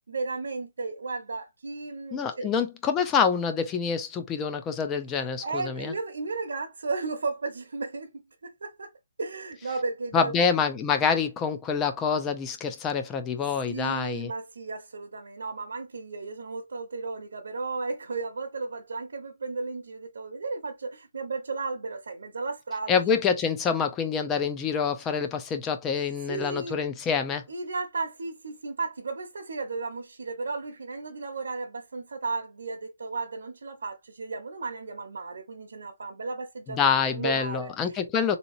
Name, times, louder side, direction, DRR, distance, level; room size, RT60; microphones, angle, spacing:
voice 1, 0.1-2.5 5.1-8.1 8.4-8.9 9.2-10.3 13.7-23.0 26.3-26.8 27.5-38.4, right 3 dB, 75° right, 0.8 m, -34 dB
voice 2, 2.1-5.9 10.1-14.3 22.9-27.4 36.7-38.4, left 6 dB, 10° left, 0.4 m, -26 dB
3.9 x 2.8 x 2.5 m
hypercardioid pair, 170°, 0 cm